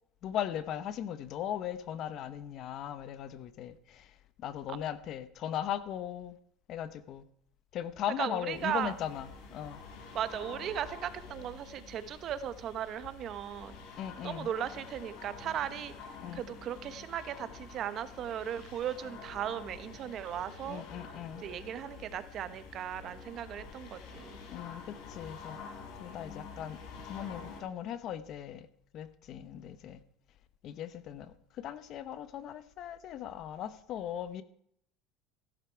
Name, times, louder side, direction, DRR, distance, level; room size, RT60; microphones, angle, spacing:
voice 1, 0.2-6.4 6.7-7.2 7.7-9.8 14.0-14.5 16.2-16.4 20.7-21.4 24.5-25.6 26.0-26.8 27.1-28.7 28.9-30.0 30.6-34.4, left 10 dB, 45° left, 13 dB, 1.0 m, -38 dB
voice 2, 8.2-8.9 10.1-13.8 14.2-15.9 16.3-20.8 21.4-24.4, right 10 dB, 40° right, 12 dB, 1.0 m, -37 dB
sound 1, 8.5-27.6, left 5 dB, 65° left, 3.7 m, -48 dB
15.0 x 12.0 x 4.7 m, 0.66 s
supercardioid pair, 135°, 0 cm